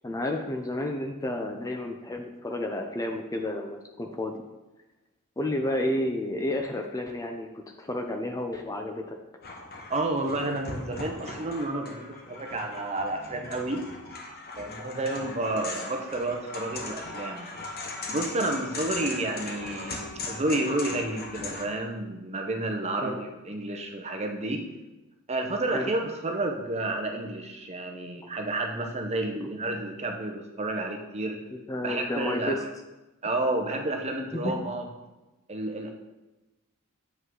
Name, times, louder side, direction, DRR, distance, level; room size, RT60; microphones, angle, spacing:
voice 1, 0.0-4.4 5.4-9.2 19.0-19.1 23.0-23.2 25.7-25.9 29.4-29.5 31.5-32.6 34.3-34.6, left 1 dB, 15° left, 4 dB, 0.5 m, -31 dB
sound 1, 9.4-21.6, left 2 dB, 45° left, 1.1 m, -39 dB
voice 2, 9.9-13.8 14.6-17.5 18.1-24.6 25.3-31.4 31.8-32.7 33.2-34.9 35.5-35.9, right 2 dB, 30° right, 3 dB, 0.8 m, -30 dB
7.9 x 5.3 x 3.8 m, 1.1 s
head